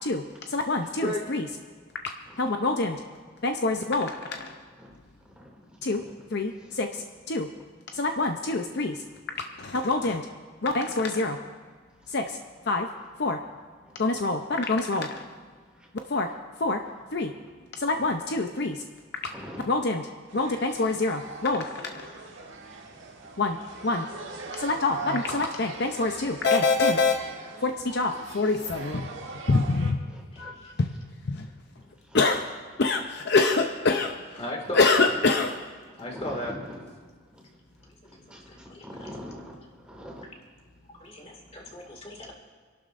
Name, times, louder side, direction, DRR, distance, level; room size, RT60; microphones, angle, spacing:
voice 1, 0.0-1.5 2.4-3.0 3.4-4.5 5.8-6.0 6.3-7.5 7.9-9.0 9.6-10.3 10.6-11.4 12.1-12.4 12.7-12.9 13.2-13.4 14.0-15.3 16.1-16.3 16.6-16.8 17.1-17.3 17.8-18.8 19.7-20.0 20.3-22.1 23.4-23.6 23.8-24.1 24.6-27.1 27.6-29.1 29.5-30.0 30.4-30.9 31.3-31.4 32.1-32.5 32.8-34.1 34.7-35.5, left 3 dB, 55° left, 4 dB, 0.7 m, -25 dB
voice 2, 5.9-6.2 6.6-6.7 8.9-9.0 10.7-11.1 11.3-11.5 14.0-14.2 16.8-17.0 17.9-18.1 19.2-19.7 24.9-25.0 25.3-25.5 29.5-29.7 30.1-30.6 32.1-32.2 34.6-35.2 35.5-35.6 36.0-36.9 38.3-40.3 42.3-42.4, equal, 5° right, -2 dB, 2.6 m, -44 dB
sound 1, 20.3-29.9, right 4 dB, 60° right, 1.5 m, -41 dB
voice 3, 30.3-30.8 34.4-35.1 36.0-36.5 37.9-38.8 40.9-42.3, left 1 dB, 30° left, 0 dB, 2.2 m, -36 dB
29.5 x 12.0 x 2.6 m, 1.5 s
head